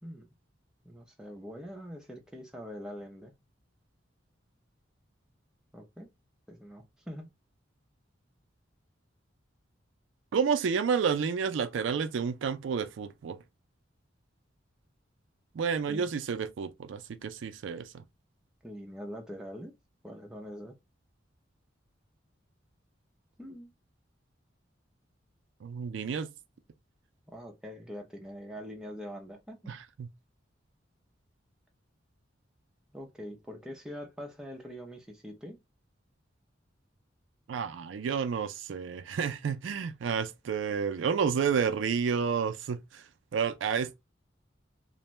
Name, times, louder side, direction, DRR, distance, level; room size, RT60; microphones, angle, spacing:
voice 1, 0.8-3.3 5.7-6.1 6.5-7.3 15.9-16.1 18.6-19.7 20.0-20.8 23.4-23.7 27.3-29.7 32.9-35.6, equal, 5° right, 0.5 m, -43 dB
voice 2, 10.3-13.4 15.5-17.9 25.6-26.3 29.7-30.1 37.5-43.0 43.3-44.0, right 6 dB, 75° right, 0.4 m, -30 dB
2.5 x 2.1 x 3.0 m
head